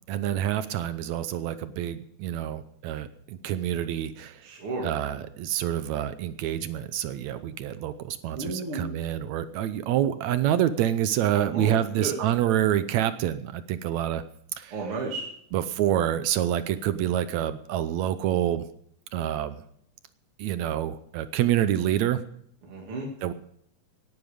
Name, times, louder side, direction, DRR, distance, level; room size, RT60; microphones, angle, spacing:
voice 1, 0.1-4.4 4.8-14.2 14.6-14.7 15.5-18.6 19.1-19.6 20.4-22.2 23.2-23.3, right 11 dB, 75° right, 12 dB, 1.7 m, -27 dB
voice 2, 4.4-4.9 8.4-8.8 11.3-12.2 14.7-15.3 22.6-23.1, right 3 dB, 45° right, -1 dB, 2.8 m, -33 dB
18.0 x 11.0 x 5.1 m, 0.69 s
omnidirectional pair, 3.8 m